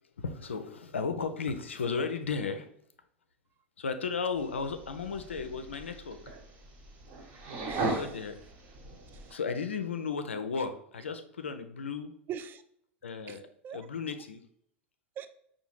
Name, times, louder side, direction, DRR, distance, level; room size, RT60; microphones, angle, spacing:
voice 1, 0.2-2.7 3.8-6.2 8.0-8.4 9.3-12.1 13.0-13.4 13.7-14.4, left 5 dB, 80° left, 9 dB, 0.4 m, -34 dB
sound 1, 4.4-9.3, right 2 dB, 50° right, 1.3 m, -38 dB
voice 2, 7.7-8.1 9.1-9.4 12.3-12.6 13.3-13.9 15.2-15.3, right 9 dB, 30° right, 10 dB, 0.3 m, -42 dB
5.6 x 2.3 x 3.0 m, 0.67 s
figure-of-eight pair, 85°, 6 cm